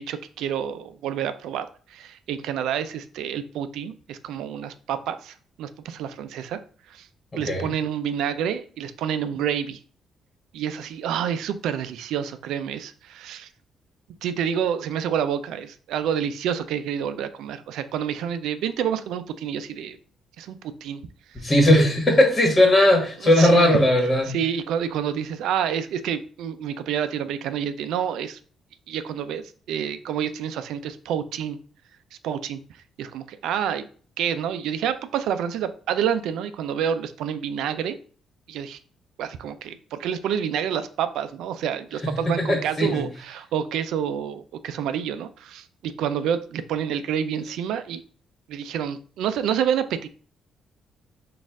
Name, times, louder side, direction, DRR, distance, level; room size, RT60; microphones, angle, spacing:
voice 1, 0.0-6.6 6.9-7.1 7.3-9.8 10.5-13.5 14.2-20.0 20.4-21.0 23.4-23.7 24.3-28.4 28.9-29.4 29.7-31.6 32.2-32.6 33.0-33.9 34.2-38.0 38.5-38.8 39.2-48.0 48.5-50.1, right 8 dB, 85° right, 11 dB, 0.3 m, -28 dB
voice 2, 7.3-7.7 21.3-24.4 42.0-43.1, left 1 dB, 30° left, 1 dB, 1.5 m, -18 dB
4.2 x 2.4 x 3.5 m, 0.43 s
cardioid pair, 90°, 0 cm